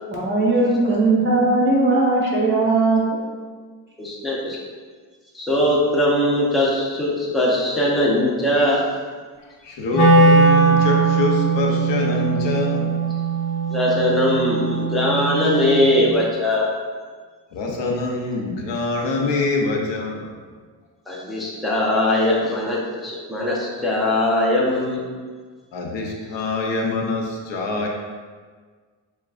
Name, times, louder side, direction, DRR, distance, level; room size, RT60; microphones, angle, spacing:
voice 1, 0.1-3.0, right 2 dB, 25° right, -5 dB, 1.1 m, -18 dB
voice 2, 4.0-4.6 5.3-8.8 13.7-16.7 21.1-25.0, left 1 dB, ahead, -5 dB, 0.6 m, -20 dB
voice 3, 9.8-12.9 17.5-20.2 25.7-27.2 27.5-27.9, left 3 dB, 80° left, 0 dB, 0.8 m, -24 dB
Wind instrument woodwind instrument, 9.9-16.0, right 3 dB, 50° left, 1.1 m, -19 dB
6.9 x 2.4 x 2.4 m, 1.5 s
cardioid pair, 135°, 43 cm